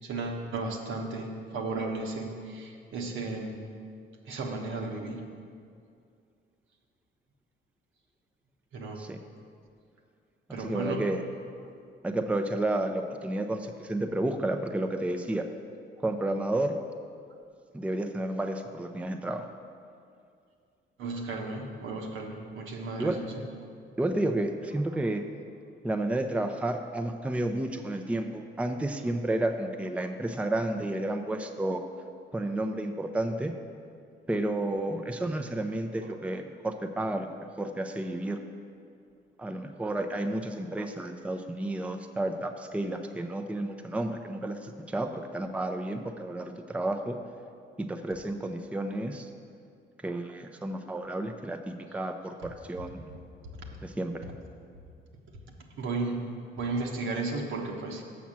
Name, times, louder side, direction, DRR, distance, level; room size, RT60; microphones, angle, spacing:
voice 1, 0.0-3.6 4.3-5.2 8.7-9.0 10.5-11.0 21.0-23.4 55.8-56.3 56.6-58.0, right 3 dB, 75° right, 1 dB, 1.2 m, -34 dB
voice 2, 10.5-11.2 12.0-15.4 16.0-16.8 17.7-19.4 23.0-23.2 24.0-25.2 25.8-31.8 32.3-33.5 34.3-37.3 37.6-38.4 39.4-47.2 47.8-49.3 50.0-53.1 53.8-54.3, right 1 dB, 5° right, 5 dB, 0.5 m, -31 dB
7.2 x 6.0 x 7.4 m, 2.3 s
cardioid pair, 90°, 20 cm